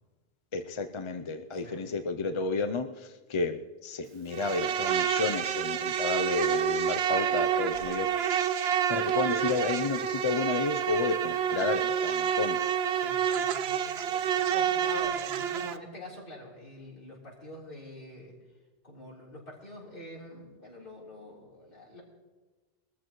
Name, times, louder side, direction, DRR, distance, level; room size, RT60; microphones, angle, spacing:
voice 1, 0.5-8.3 8.9-12.6, left 4 dB, 35° left, 7 dB, 0.6 m, -31 dB
voice 2, 1.5-1.8 12.9-18.3 18.8-22.0, left 1 dB, 55° left, -5 dB, 4.1 m, -46 dB
Insect, 4.3-15.8, right 9 dB, 75° right, 0.9 m, -28 dB
21.5 x 14.0 x 3.1 m, 1.3 s
omnidirectional pair, 1.1 m